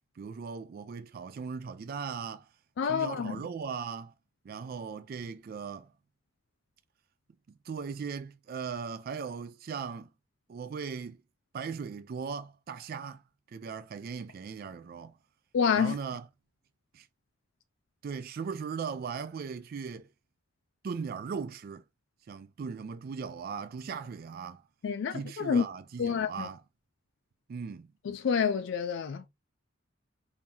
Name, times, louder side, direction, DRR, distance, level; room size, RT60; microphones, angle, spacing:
voice 1, 0.2-2.5 2.9-4.1 4.4-5.9 7.5-10.1 10.5-11.2 11.5-13.2 13.5-15.1 15.8-16.3 16.9-17.1 18.0-20.1 20.8-21.8 22.3-24.6 25.1-26.6 27.5-27.9, right 6 dB, 50° right, 0.3 m, -38 dB
voice 2, 2.8-3.4 15.5-16.0 24.8-25.6 26.0-26.5 28.1-29.3, left 6 dB, 65° left, 0.3 m, -28 dB
3.8 x 2.7 x 2.9 m
head